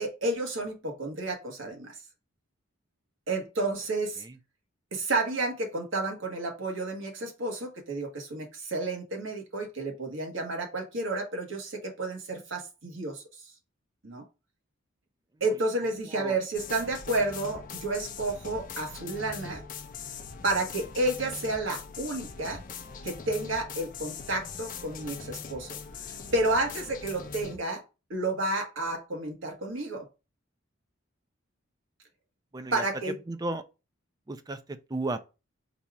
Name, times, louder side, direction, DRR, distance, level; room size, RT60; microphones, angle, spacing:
voice 1, 0.0-1.9 3.3-4.2 4.9-13.2 14.0-14.2 15.4-19.6 20.4-22.6 23.0-25.8 26.3-27.8 28.1-30.0 32.7-33.2, right 2 dB, 75° right, 1.4 m, -31 dB
sound 1, 16.5-27.6, left 5 dB, 40° left, 0.5 m, -41 dB
voice 2, 32.5-32.8 33.3-33.6 34.3-35.3, right 2 dB, 20° right, 0.4 m, -34 dB
4.1 x 2.4 x 4.6 m
head